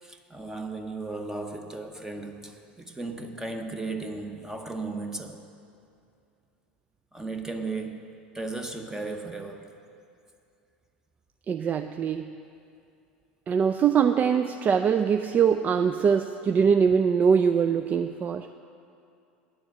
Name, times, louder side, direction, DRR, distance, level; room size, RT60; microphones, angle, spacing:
voice 1, 0.0-5.5 7.1-9.8, right 3 dB, 10° right, 5 dB, 0.9 m, -36 dB
voice 2, 11.5-12.4 13.5-18.5, right 7 dB, 30° right, 8 dB, 0.4 m, -23 dB
9.9 x 7.1 x 7.6 m, 2.5 s
figure-of-eight pair, 80°, 6 cm